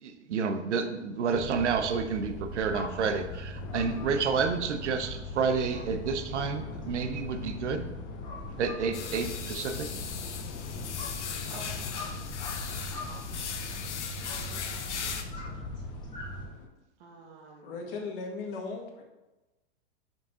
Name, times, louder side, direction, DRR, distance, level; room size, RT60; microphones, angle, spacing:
voice 1, 0.0-7.8 8.6-9.9, right 5 dB, 85° right, 8 dB, 0.8 m, -30 dB
sound 1, 1.3-16.4, left 1 dB, 15° left, 1.6 m, -40 dB
sound 2, 3.5-16.7, left 7 dB, 35° left, 0.8 m, -45 dB
sound 3, 8.9-15.2, left 7 dB, 90° left, 0.8 m, -38 dB
voice 2, 14.2-14.9 15.3-15.8 17.0-17.8, right 4 dB, 60° right, -2 dB, 1.5 m, -50 dB
voice 3, 17.6-19.0, left 4 dB, 50° left, 2 dB, 1.6 m, -37 dB
5.9 x 5.3 x 3.7 m, 1.1 s
hypercardioid pair, 125°, 34 cm